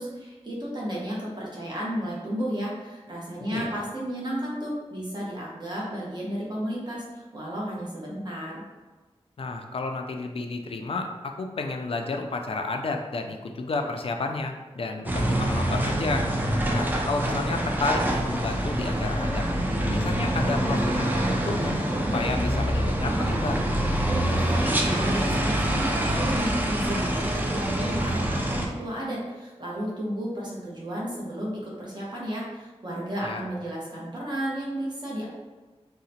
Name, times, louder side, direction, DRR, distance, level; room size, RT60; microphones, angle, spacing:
voice 1, 0.0-8.6 24.1-35.2, equal, 40° right, -5 dB, 0.8 m, -33 dB
voice 2, 9.4-16.3 16.7-19.5 19.9-21.7 22.1-23.6 33.2-33.5, left 3 dB, 55° left, 4 dB, 0.4 m, -31 dB
sound 1, 15.0-28.7, right 1 dB, 15° right, 0.4 m, -25 dB
3.8 x 2.1 x 2.8 m, 1.3 s
wide cardioid pair, 85°, 11 cm